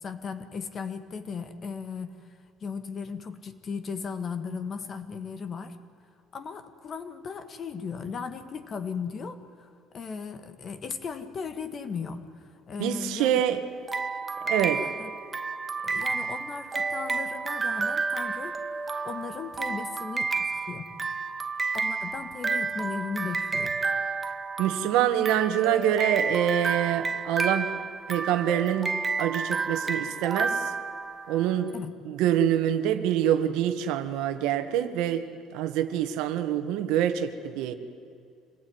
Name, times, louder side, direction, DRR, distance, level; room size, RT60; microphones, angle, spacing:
voice 1, 0.0-2.2 2.6-5.8 6.3-13.4 14.7-15.2 15.8-18.6 19.0-20.9 21.7-23.7 31.7-31.9, left 5 dB, 30° left, 10 dB, 1.5 m, -37 dB
voice 2, 12.8-13.6 14.4-14.8 24.6-27.7 28.1-30.7 31.3-31.7 32.0-35.2 35.5-37.7, right 10 dB, 75° right, 9 dB, 1.7 m, -26 dB
sound 1, 13.9-31.5, right 4 dB, 15° right, 0.7 m, -31 dB
26.0 x 19.0 x 9.7 m, 2.5 s
cardioid pair, 170°, 0 cm